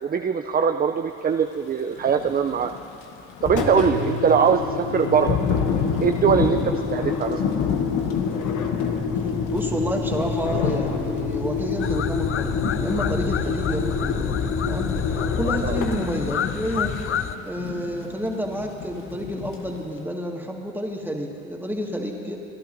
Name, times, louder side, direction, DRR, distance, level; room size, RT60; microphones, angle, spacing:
voice 1, 0.0-2.7 3.4-5.4 6.0-7.4 15.6-15.8, right 7 dB, 30° right, 7 dB, 0.4 m, -21 dB
Thunder / Rain, 1.9-20.0, left 7 dB, 85° left, 0.9 m, -31 dB
Engine, 3.4-17.4, left 5 dB, 65° left, 1.3 m, -28 dB
voice 2, 9.5-17.0 17.5-22.4, equal, 5° right, 0 dB, 1.8 m, -29 dB
sound 1, 11.8-17.4, left 9 dB, 40° left, 0.5 m, -29 dB
25.0 x 11.0 x 2.7 m, 3.0 s
supercardioid pair, 55°, 32 cm